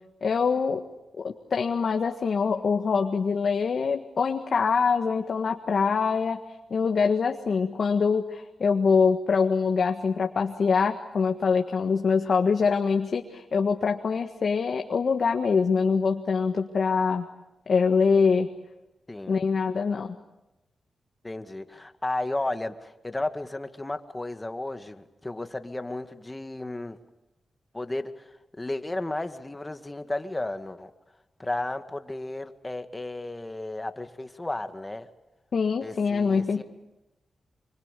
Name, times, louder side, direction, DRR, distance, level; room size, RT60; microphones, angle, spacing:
voice 1, 0.2-0.8 1.2-6.4 6.7-17.2 17.7-18.5 19.3-20.2 35.5-36.6, left 5 dB, 65° left, 4 dB, 1.7 m, -24 dB
voice 2, 19.1-19.4 21.2-27.0 27.7-28.2 28.6-30.9 31.4-35.1 35.8-36.6, left 2 dB, 20° left, 8 dB, 2.1 m, -33 dB
26.0 x 25.0 x 8.4 m, 0.99 s
cardioid pair, 65°, 0 cm